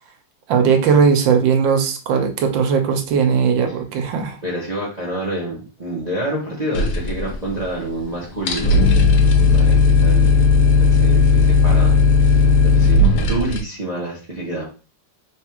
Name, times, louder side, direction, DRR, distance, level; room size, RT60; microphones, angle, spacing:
voice 1, 0.5-4.4, right 6 dB, 80° right, 6 dB, 1.4 m, -18 dB
voice 2, 4.4-8.8 9.1-9.2 9.5-10.4 10.8-14.7, right 1 dB, 35° right, -4 dB, 0.7 m, -28 dB
sound 1, 6.7-7.8 8.0-8.1 8.4-13.6, left 4 dB, 70° left, 1.2 m, -15 dB
3.6 x 2.3 x 4.4 m, 0.35 s
omnidirectional pair, 2.0 m